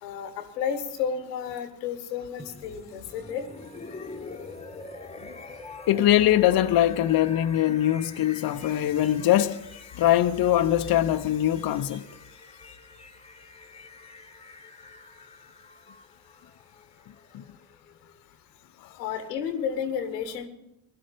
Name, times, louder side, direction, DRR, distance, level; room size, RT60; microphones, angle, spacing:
voice 1, 0.0-3.4 19.0-20.5, left 7 dB, 85° left, 1.3 m, -31 dB
sound 1, 2.4-18.3, left 3 dB, 15° left, 1.4 m, -46 dB
voice 2, 5.9-9.6 10.0-12.0 17.3-17.4 18.8-18.9, left 12 dB, 50° left, 0.8 m, -22 dB
17.5 x 11.0 x 5.1 m
hypercardioid pair, 45°, 48 cm